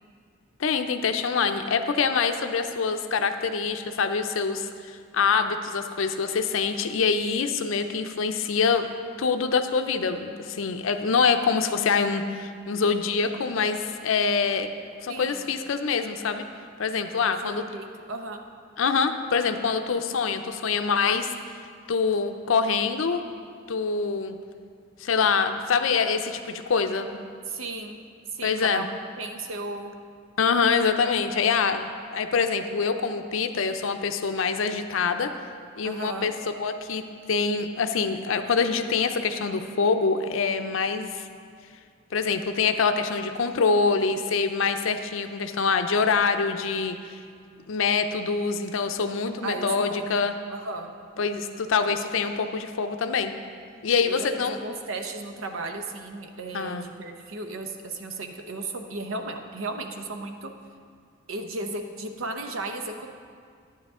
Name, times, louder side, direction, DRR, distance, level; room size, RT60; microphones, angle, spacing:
voice 1, 0.6-8.9 9.2-14.7 15.0-16.4 16.8-17.6 18.8-21.3 21.9-23.3 23.7-24.4 25.0-27.3 28.4-28.8 30.4-35.3 35.8-36.3 36.6-41.2 42.1-47.0 47.7-50.3 51.2-53.3 53.8-54.6 56.5-56.9, left 5 dB, 80° left, 7 dB, 0.5 m, -25 dB
voice 2, 15.1-15.5 17.3-18.4 27.5-28.0 28.3-29.9 35.8-36.3 49.4-50.1 50.5-50.9 54.0-60.5 61.3-63.2, right 2 dB, 85° right, 5 dB, 0.8 m, -35 dB
10.5 x 9.3 x 3.6 m, 2.2 s
head